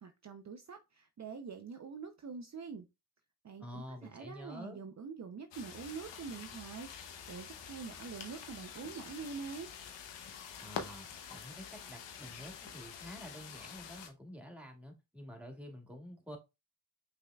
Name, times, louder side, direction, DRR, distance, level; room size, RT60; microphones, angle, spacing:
voice 1, 0.0-2.9 3.4-9.7, right 5 dB, 40° right, 0.7 m, -45 dB
voice 2, 3.6-4.8 10.6-16.4, equal, 5° right, 1.9 m, -49 dB
sound 1, 5.5-14.1, left 7 dB, 90° left, 0.9 m, -47 dB
5.3 x 3.7 x 2.3 m
cardioid pair, 55°, 42 cm